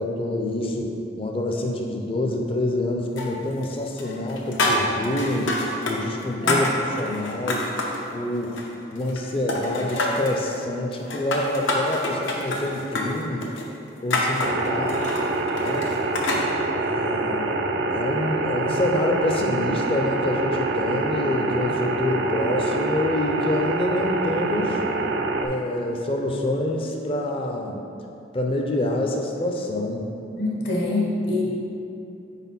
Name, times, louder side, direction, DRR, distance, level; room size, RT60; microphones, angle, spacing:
voice 1, 0.0-5.5 5.9-7.7 8.1-8.6 8.9-13.5 14.0-15.0 15.5-15.9 16.7-24.8 25.4-27.8 28.3-30.1, left 1 dB, 30° left, 1 dB, 0.4 m, -27 dB
sound 1, 3.2-3.7 4.0-6.0 6.2-8.0 8.4-9.2 9.5-10.4 10.9-16.4, left 2 dB, 90° left, 0.7 m, -27 dB
sound 2, 14.4-25.5, right 2 dB, 60° right, 0.4 m, -25 dB
voice 2, 30.4-31.4, left 2 dB, 70° left, -3 dB, 1.1 m, -24 dB
4.3 x 4.1 x 5.4 m, 2.7 s
head